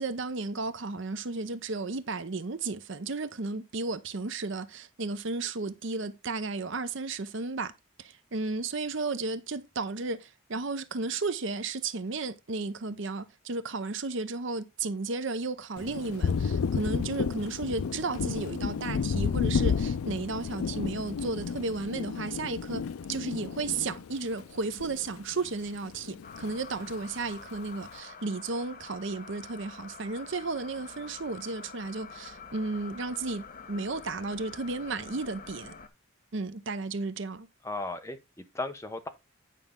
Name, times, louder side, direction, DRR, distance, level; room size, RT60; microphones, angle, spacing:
voice 1, 0.0-7.7 8.0-35.7 36.3-37.5, right 3 dB, 60° right, 0.7 m, -34 dB
Thunder, 15.8-25.5 25.8-27.0, left 6 dB, 90° left, 0.4 m, -32 dB
sound 1, 26.2-35.9, left 5 dB, 40° left, 0.9 m, -47 dB
voice 2, 37.6-39.1, left 2 dB, 15° left, 0.8 m, -36 dB
9.1 x 5.6 x 3.6 m
head